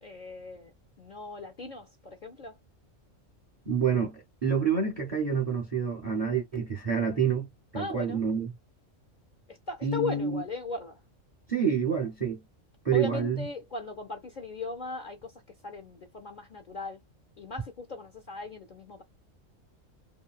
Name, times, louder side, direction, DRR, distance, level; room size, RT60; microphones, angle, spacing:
voice 1, 0.0-2.6 7.8-8.2 9.5-11.0 12.9-17.0 17.4-19.0, left 3 dB, 50° left, 0.6 m, -38 dB
voice 2, 3.7-7.5 7.7-8.5 9.8-10.4 11.5-12.4 12.8-13.5, right 6 dB, 40° right, 0.5 m, -28 dB
3.0 x 2.6 x 2.3 m
omnidirectional pair, 1.3 m